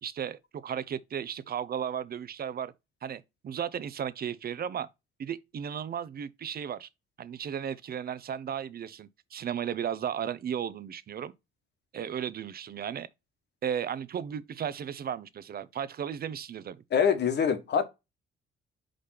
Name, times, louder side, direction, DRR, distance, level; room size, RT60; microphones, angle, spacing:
voice 1, 0.0-2.7 3.0-4.9 5.2-6.9 7.2-11.3 11.9-13.1 13.6-16.8, right 8 dB, 50° right, 0.6 m, -35 dB
voice 2, 16.9-17.8, left 7 dB, 60° left, 1.3 m, -24 dB
5.1 x 3.4 x 5.6 m
cardioid pair, 90°, 20 cm